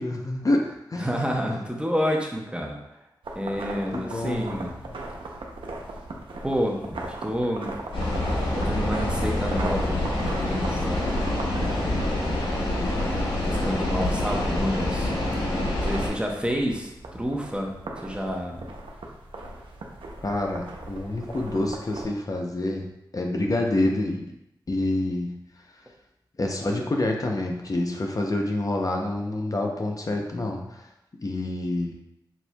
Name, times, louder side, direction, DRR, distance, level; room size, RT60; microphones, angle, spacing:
voice 1, 0.0-1.1 3.9-4.6 4.9-5.0 20.2-22.9 23.1-24.3 24.7-25.4 26.4-30.9 31.2-31.9, left 2 dB, 45° left, 1 dB, 0.6 m, -27 dB
voice 2, 1.0-2.8 3.3-4.7 6.4-7.8 8.6-10.0 10.5-11.0 11.8-12.5 13.1-15.1 15.8-17.8 18.0-18.7, equal, 10° right, 0 dB, 0.8 m, -29 dB
sound 1, 3.2-22.1, right 2 dB, 85° right, 0.6 m, -39 dB
sound 2, 7.9-16.1, left 1 dB, 85° left, 1.2 m, -26 dB
7.2 x 2.6 x 2.2 m, 0.85 s
cardioid pair, 45°, 8 cm